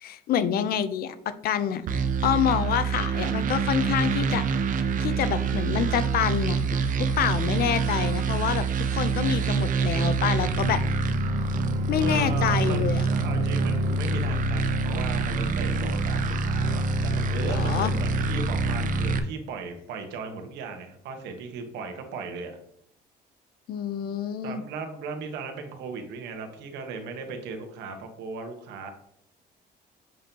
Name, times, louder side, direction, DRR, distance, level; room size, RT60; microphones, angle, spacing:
voice 1, 0.0-4.4 5.0-8.6 8.9-10.8 11.9-13.0 17.4-17.9 23.7-24.6, left 9 dB, 65° left, 13 dB, 0.6 m, -27 dB
sound 1, 1.9-19.2, right 4 dB, 50° right, 0.8 m, -26 dB
voice 2, 11.9-22.6 24.4-28.9, right 4 dB, 90° right, 5 dB, 1.4 m, -37 dB
7.7 x 5.3 x 2.9 m, 0.70 s
cardioid pair, 110°, 17 cm